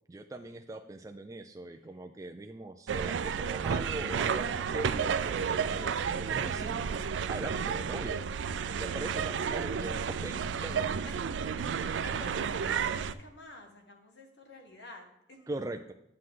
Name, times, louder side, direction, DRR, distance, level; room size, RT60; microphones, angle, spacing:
voice 1, 0.1-6.9 7.3-8.2 8.8-10.9 15.5-15.9, right 2 dB, 20° right, 5 dB, 0.3 m, -41 dB
sound 1, 2.9-13.1, right 6 dB, 90° right, 0.4 m, -32 dB
voice 2, 11.1-15.5, equal, 70° left, 3 dB, 1.6 m, -50 dB
9.6 x 7.7 x 3.8 m, 0.81 s
head